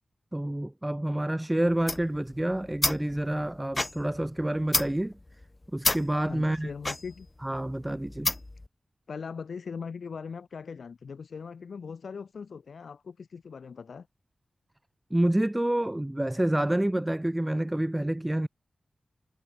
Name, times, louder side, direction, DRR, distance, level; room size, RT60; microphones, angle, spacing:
voice 1, 0.3-5.1 5.7-6.7 7.4-8.3 15.1-18.5, right 1 dB, 15° right, 1.9 m, -28 dB
sound 1, 1.7-8.7, left 2 dB, 25° left, 0.7 m, -32 dB
voice 2, 6.3-7.3 9.1-14.1, left 5 dB, 80° left, 6.9 m, -40 dB
wide cardioid pair, 70°, 0 cm